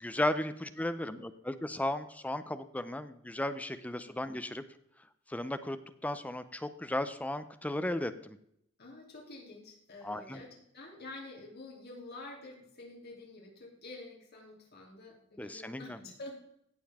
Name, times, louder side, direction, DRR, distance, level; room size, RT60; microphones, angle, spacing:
voice 1, 0.0-4.6 5.3-5.8 6.0-8.4 10.0-10.4 15.4-16.0, left 1 dB, 5° left, 11 dB, 0.5 m, -35 dB
voice 2, 8.8-16.4, left 2 dB, 55° left, -2 dB, 3.1 m, -48 dB
16.5 x 6.8 x 3.5 m, 0.73 s
head